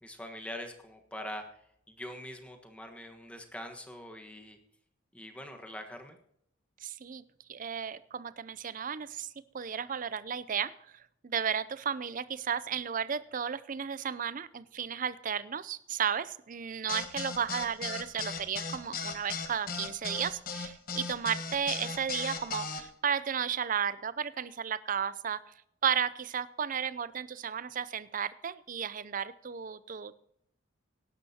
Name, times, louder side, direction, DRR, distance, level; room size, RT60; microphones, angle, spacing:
voice 1, 0.0-1.6 1.9-4.6 5.1-6.2, left 1 dB, 5° left, 4 dB, 1.4 m, -43 dB
voice 2, 6.8-7.2 7.5-10.7 11.2-25.4 25.8-30.1, right 7 dB, 40° right, 16 dB, 0.5 m, -34 dB
sound 1, 16.9-22.8, left 5 dB, 45° left, 1.3 m, -37 dB
17.5 x 11.0 x 2.9 m, 0.72 s
head